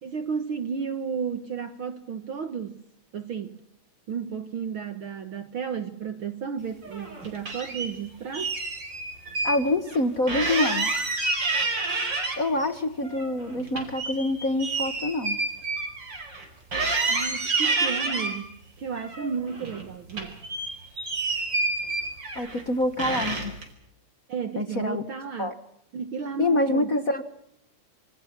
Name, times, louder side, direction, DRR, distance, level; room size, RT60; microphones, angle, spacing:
voice 1, 0.0-2.8 3.1-3.6 4.1-8.5 17.1-20.4 21.3-21.4 24.3-25.5 25.9-27.0, right 6 dB, 55° right, 1.7 m, -33 dB
sound 1, 6.8-7.9 8.3-9.6 9.9-10.0 10.3-12.7 13.0-16.4 16.7-18.4 19.0-19.8 20.1-22.6 23.0-23.6, right 3 dB, 35° right, 5.2 m, -29 dB
voice 2, 9.4-10.9 12.4-15.4 22.3-23.5 24.6-25.0 25.4-25.5 26.4-27.2, left 2 dB, 45° left, 1.1 m, -26 dB
27.0 x 25.5 x 5.9 m
omnidirectional pair, 3.4 m